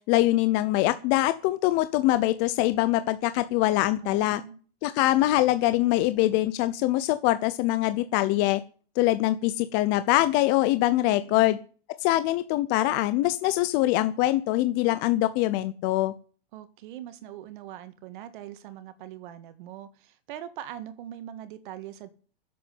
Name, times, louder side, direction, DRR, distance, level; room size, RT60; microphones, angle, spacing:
voice 1, 0.1-4.4 4.8-8.6 9.0-11.6 12.0-16.1, left 16 dB, 35° left, 0.7 m, -23 dB
voice 2, 4.0-4.6 11.1-11.6 16.5-22.1, right 11 dB, 55° right, 1.8 m, -42 dB
10.5 x 7.8 x 9.4 m
supercardioid pair, 150°, 30 cm